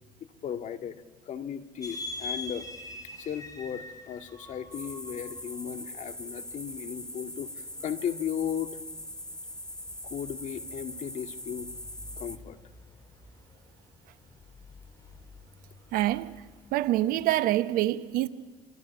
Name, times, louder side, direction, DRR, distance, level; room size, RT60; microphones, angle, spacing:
voice 1, 0.4-2.7 3.2-8.8 10.0-11.7 12.2-12.6, left 8 dB, 55° left, 2.1 m, -36 dB
sound 1, 1.8-17.4, left 2 dB, 25° left, 6.3 m, -46 dB
sound 2, 4.7-12.4, left 1 dB, 5° left, 1.3 m, -41 dB
voice 2, 15.9-16.3 16.7-18.3, right 14 dB, 70° right, 1.1 m, -25 dB
29.0 x 23.5 x 6.0 m
hypercardioid pair, 65°, 15 cm